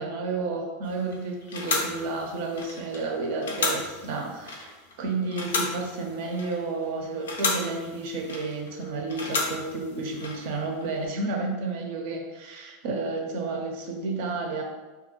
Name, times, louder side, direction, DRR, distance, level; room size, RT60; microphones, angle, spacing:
voice 1, 0.0-4.7 5.0-14.6, right 3 dB, 65° right, 1 dB, 0.5 m, -31 dB
sound 1, 0.8-11.1, left 3 dB, 85° left, 0.4 m, -33 dB
2.3 x 2.2 x 2.9 m, 1.2 s
hypercardioid pair, 95°, 0 cm